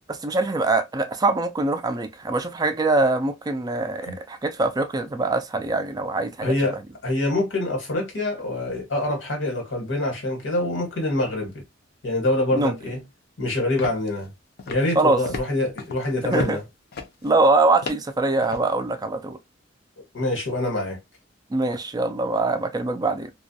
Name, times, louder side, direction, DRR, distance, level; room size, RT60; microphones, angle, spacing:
voice 1, 0.1-6.7 12.5-12.7 15.0-15.2 16.2-16.6 17.2-19.4 21.5-23.3, right 2 dB, 20° right, 0.3 m, -23 dB
voice 2, 6.4-6.8 7.0-11.6 12.0-13.0 13.4-14.3 14.7-16.6 20.1-21.0, left 1 dB, 90° left, 1.3 m, -25 dB
sound 1, 13.8-14.3 14.6-15.0 15.3-16.6 16.9-17.3 17.8-18.7, left 3 dB, 60° left, 0.5 m, -35 dB
2.3 x 2.1 x 2.6 m
head